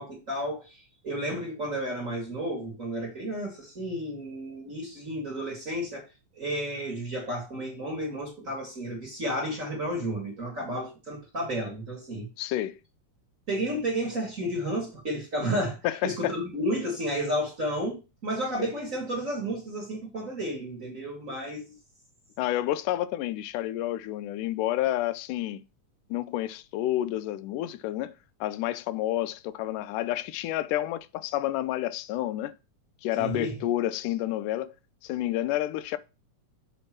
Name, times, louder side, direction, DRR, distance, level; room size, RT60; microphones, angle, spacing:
voice 1, 0.0-6.0 6.4-12.3 13.5-15.8 16.0-21.8 33.2-33.5, equal, 30° right, 1.8 m, -32 dB
voice 2, 12.4-12.8 15.8-16.3 18.6-18.7 22.4-25.6 26.1-28.2 28.4-32.6 33.0-34.7 35.0-36.0, left 14 dB, 85° left, 2.1 m, -29 dB
7.0 x 3.4 x 5.9 m
omnidirectional pair, 3.6 m